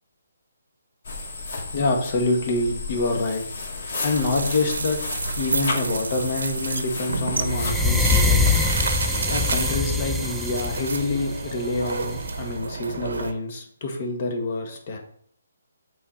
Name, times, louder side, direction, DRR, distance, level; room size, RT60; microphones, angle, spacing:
sound 1, 1.0-9.7, left 3 dB, 50° left, 2.5 m, -33 dB
voice 1, 1.7-3.4 3.8-5.0 5.3-8.6 9.3-15.0, left 2 dB, 35° left, 3 dB, 1.6 m, -26 dB
sound 2, 4.1-13.3, right 3 dB, 80° right, 0.9 m, -30 dB
sound 3, 7.4-12.4, left 3 dB, ahead, 0.4 m, -24 dB
8.0 x 4.3 x 4.3 m, 0.65 s
hypercardioid pair, 165°, 0 cm